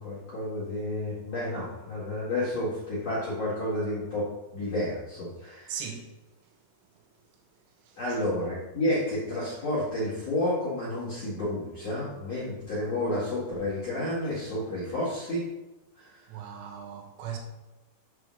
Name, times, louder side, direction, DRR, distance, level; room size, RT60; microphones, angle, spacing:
voice 1, 0.0-5.8 8.0-15.5 16.0-16.2, left 1 dB, 50° left, 2.0 m, -31 dB
voice 2, 5.7-6.1 16.3-17.4, right 8 dB, 80° right, 3.7 m, -38 dB
7.7 x 3.4 x 6.3 m
omnidirectional pair, 5.7 m